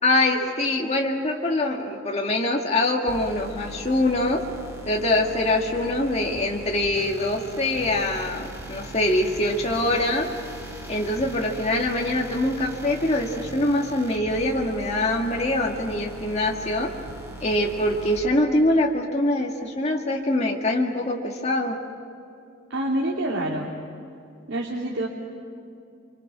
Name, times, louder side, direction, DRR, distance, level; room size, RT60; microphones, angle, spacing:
voice 1, 0.0-4.4 4.9-10.3 10.9-16.9 17.4-21.8, left 1 dB, 30° left, 0 dB, 2.0 m, -24 dB
sound 1, 3.1-18.2, right 1 dB, 15° right, 5.0 m, -40 dB
voice 2, 22.7-23.8 24.5-25.1, right 1 dB, 70° right, -3 dB, 2.8 m, -27 dB
30.0 x 25.0 x 6.2 m, 2.6 s
head